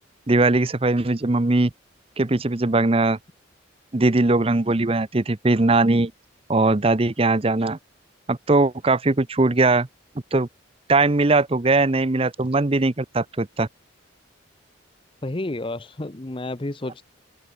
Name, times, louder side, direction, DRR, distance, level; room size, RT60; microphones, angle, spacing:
voice 1, 0.3-1.7 2.2-3.2 3.9-6.1 6.5-7.8 8.3-9.9 10.3-10.5 10.9-13.7, right 2 dB, 30° right, 0.7 m, -20 dB
voice 2, 15.2-17.1, left 2 dB, 25° left, 0.8 m, -31 dB
open air
head